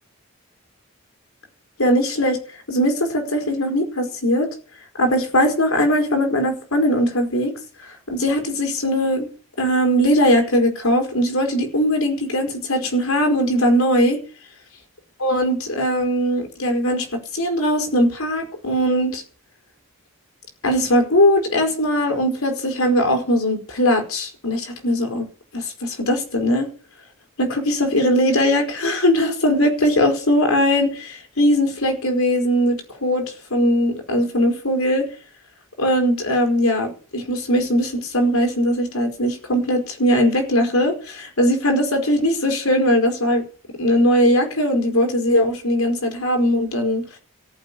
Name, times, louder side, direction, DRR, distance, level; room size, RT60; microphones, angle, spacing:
voice 1, 1.8-2.4 2.7-4.5 5.0-7.5 8.1-9.3 9.6-14.2 15.2-19.2 20.6-25.3 25.5-26.7 27.4-35.1 35.8-43.4 43.8-47.0, equal, 90° left, 4.5 m, -20 dB
15.0 x 8.0 x 9.9 m
head